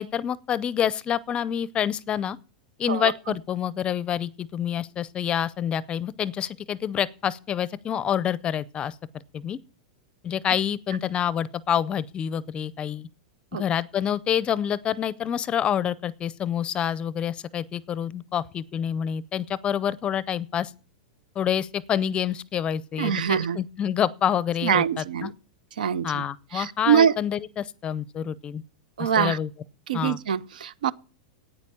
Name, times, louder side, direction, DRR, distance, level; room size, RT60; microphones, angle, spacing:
voice 1, 0.0-2.4 2.8-8.9 9.3-9.6 10.2-13.1 13.5-20.7 21.4-24.8 25.2-25.3 26.0-28.6 29.0-29.5 29.9-30.2, left 9 dB, 25° left, 0.5 m, -27 dB
voice 2, 2.9-3.4 13.5-13.6 23.0-23.6 24.6-25.3 25.8-26.2 26.5-27.1 29.0-29.4 29.9-30.9, right 8 dB, 85° right, 0.6 m, -24 dB
9.8 x 9.0 x 8.5 m
supercardioid pair, 140°, 4 cm